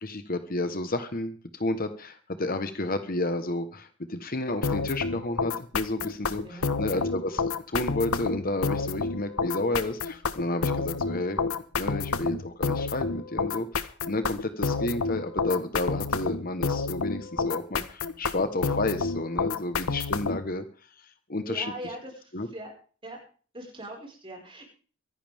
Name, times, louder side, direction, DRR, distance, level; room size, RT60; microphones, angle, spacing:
voice 1, 0.0-11.4 11.8-20.7 21.0-21.7 22.3-22.5, left 2 dB, 40° left, 9 dB, 1.2 m, -31 dB
sound 1, 4.6-20.5, left 4 dB, 85° left, 1.1 m, -29 dB
voice 2, 6.4-7.1 21.5-22.7 23.0-23.2 23.5-24.6, right 1 dB, 25° right, 1 dB, 5.2 m, -41 dB
24.0 x 11.0 x 3.6 m, 0.40 s
head